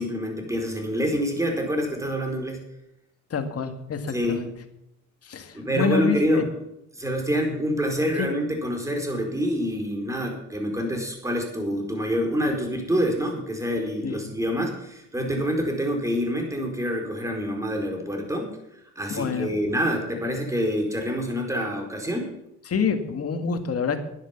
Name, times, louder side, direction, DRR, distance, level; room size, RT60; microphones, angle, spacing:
voice 1, 0.0-2.6 4.1-4.5 5.5-6.5 6.9-18.6 19.0-22.3, equal, 10° right, 2 dB, 4.4 m, -26 dB
voice 2, 3.3-4.5 5.2-6.4 8.2-8.3 14.0-14.2 19.1-19.5 22.7-24.0, left 5 dB, 50° left, 7 dB, 2.0 m, -27 dB
11.0 x 10.0 x 7.1 m, 0.83 s
cardioid pair, 90°, 30 cm